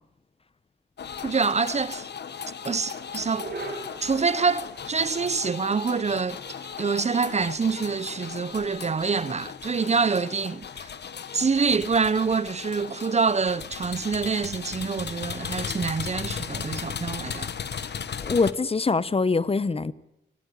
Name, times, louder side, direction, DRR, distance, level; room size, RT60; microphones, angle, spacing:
sound 1, 1.0-18.5, left 7 dB, 55° left, 1.3 m, -37 dB
voice 1, 1.2-2.1 2.6-3.5 4.0-6.4 6.8-10.9 11.3-17.5, right 5 dB, 35° right, 0.7 m, -26 dB
sound 2, 2.8-16.8, right 3 dB, 50° right, 5.5 m, -48 dB
voice 2, 18.2-19.9, left 4 dB, 30° left, 0.8 m, -23 dB
18.0 x 18.0 x 9.2 m
cardioid pair, 85°, 20 cm